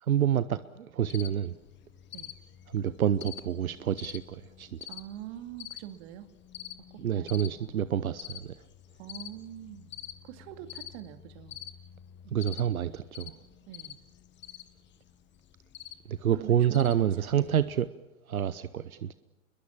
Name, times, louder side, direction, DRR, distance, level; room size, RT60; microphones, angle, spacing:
voice 1, 0.0-1.6 2.7-4.8 7.0-8.6 12.3-13.4 16.1-17.9 18.3-19.1, right 10 dB, 85° right, 0.9 m, -28 dB
Cricket, 1.1-17.9, left 10 dB, 25° left, 1.3 m, -47 dB
voice 2, 4.9-6.3 6.9-7.8 9.0-9.9 10.2-11.6 13.7-14.0 16.3-17.6, right 12 dB, 50° right, 2.3 m, -44 dB
27.5 x 22.0 x 7.3 m
hypercardioid pair, 105°, 41 cm